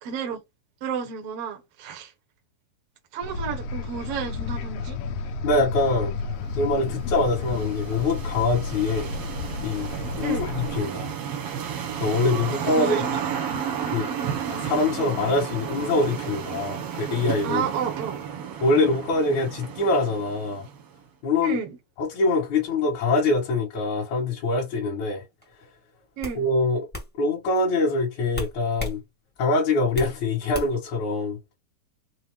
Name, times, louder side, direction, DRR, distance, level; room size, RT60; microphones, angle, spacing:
voice 1, 0.0-0.4 0.8-2.1 3.1-5.0 10.2-10.5 12.8-13.1 13.4-13.7 17.4-18.2 21.4-21.8 26.2-26.4, right 7 dB, 90° right, 1.3 m, -31 dB
sound 1, 3.2-10.8, left 4 dB, 80° left, 2.2 m, -32 dB
voice 2, 5.4-6.1 6.6-9.1 9.6-9.9 10.2-11.1 12.0-13.0 13.9-14.1 14.5-17.6 18.6-20.7 21.2-21.6 22.0-25.2 26.3-26.9 27.2-29.0 29.4-31.4, left 2 dB, 60° left, 2.5 m, -24 dB
sound 2, 6.4-20.9, right 8 dB, 70° right, 1.4 m, -33 dB
sound 3, 25.4-25.6 26.2-26.4 26.9-27.1 28.3-29.0 29.4-30.2 30.5-30.9, left 1 dB, 10° left, 0.5 m, -33 dB
6.1 x 2.2 x 3.5 m
omnidirectional pair, 4.3 m